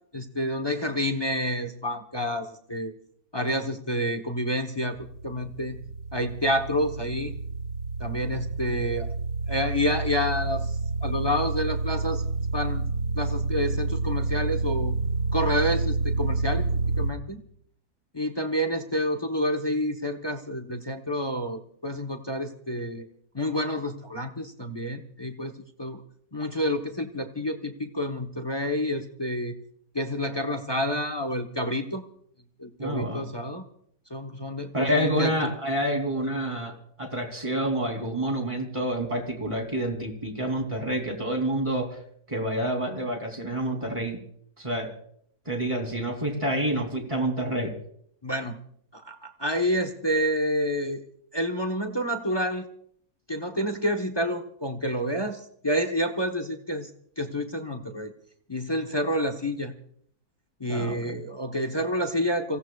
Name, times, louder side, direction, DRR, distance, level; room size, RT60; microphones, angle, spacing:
voice 1, 0.1-2.9 3.3-5.0 5.2-5.8 6.1-7.3 8.0-9.1 9.5-12.2 12.5-12.8 13.1-14.9 15.3-16.6 17.0-17.4 18.1-23.1 23.3-26.0 26.3-29.5 29.9-32.0 32.6-33.6 34.1-35.5 48.2-48.6 48.9-51.0 51.3-52.7 53.3-56.9 57.2-58.1 58.5-59.7 60.6-62.6, equal, 20° left, 7 dB, 1.0 m, -29 dB
sound 1, 4.9-17.1, right 3 dB, 60° right, 2.2 m, -29 dB
voice 2, 32.8-33.3 34.7-42.0 42.3-44.2 44.6-44.9 45.4-47.7 60.7-61.0, right 1 dB, 20° right, 3 dB, 3.1 m, -28 dB
27.0 x 17.0 x 2.4 m, 0.67 s
omnidirectional pair, 1.6 m